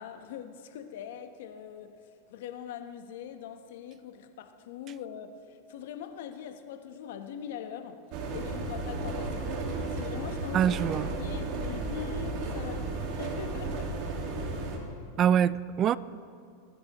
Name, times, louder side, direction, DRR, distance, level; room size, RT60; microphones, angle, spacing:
voice 1, 0.0-2.0 2.3-8.0 8.3-9.5 9.9-10.8 11.2-14.0, left 8 dB, 70° left, 8 dB, 1.0 m, -42 dB
sound 1, 8.1-14.8, right 2 dB, 50° right, 1.9 m, -34 dB
voice 2, 10.5-11.1 15.2-16.0, right 9 dB, 35° right, 19 dB, 0.3 m, -24 dB
24.5 x 9.6 x 3.0 m, 2.3 s
hypercardioid pair, 125°, 0 cm